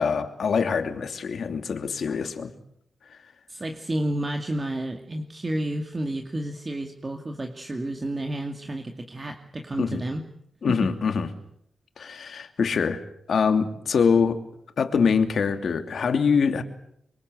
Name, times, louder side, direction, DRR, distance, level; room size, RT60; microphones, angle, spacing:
voice 1, 0.0-2.5 9.8-10.0 10.6-11.3 12.0-13.0 13.3-14.4 14.8-16.6, left 6 dB, 70° left, 2.8 m, -24 dB
voice 2, 3.5-10.2 10.7-10.8, right 1 dB, 30° right, 2.3 m, -31 dB
24.5 x 24.0 x 8.2 m
cardioid pair, 80°, 0 cm